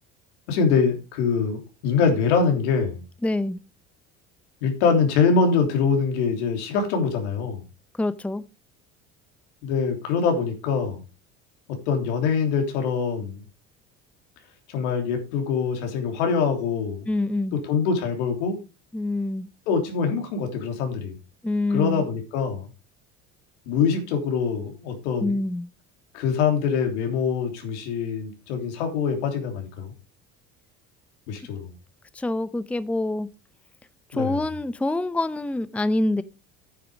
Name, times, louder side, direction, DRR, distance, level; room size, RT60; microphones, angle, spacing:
voice 1, 0.5-3.0 4.6-7.6 9.6-11.0 11.7-13.4 14.7-17.1 17.5-18.6 19.7-21.2 21.7-22.7 23.7-25.4 26.1-29.9 31.3-31.7 34.1-34.4, left 5 dB, 90° left, 3.3 m, -24 dB
voice 2, 3.2-3.6 8.0-8.4 17.1-17.6 18.9-19.5 21.4-22.0 25.2-25.7 32.1-33.3 34.1-36.2, left 2 dB, 5° left, 0.6 m, -26 dB
9.4 x 8.5 x 4.8 m
supercardioid pair, 95°, 34 cm